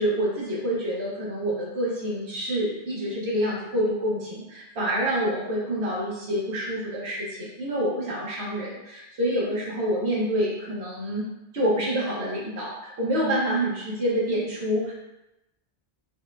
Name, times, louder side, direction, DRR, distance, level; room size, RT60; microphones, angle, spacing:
voice 1, 0.0-11.2 11.5-14.9, equal, 70° right, -5 dB, 1.2 m, -27 dB
4.1 x 2.1 x 2.4 m, 0.93 s
omnidirectional pair, 1.2 m